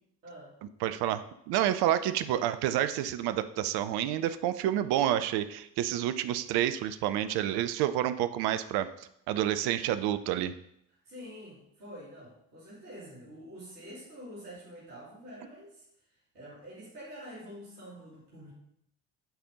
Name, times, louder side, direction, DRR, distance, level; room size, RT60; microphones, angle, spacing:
voice 1, 0.2-0.5 11.0-15.8 16.3-18.5, equal, 85° right, -8 dB, 2.2 m, -47 dB
voice 2, 0.8-8.9 9.3-10.5, right 12 dB, 60° right, 12 dB, 0.6 m, -29 dB
7.9 x 4.3 x 5.0 m, 0.75 s
figure-of-eight pair, 45°, 45 cm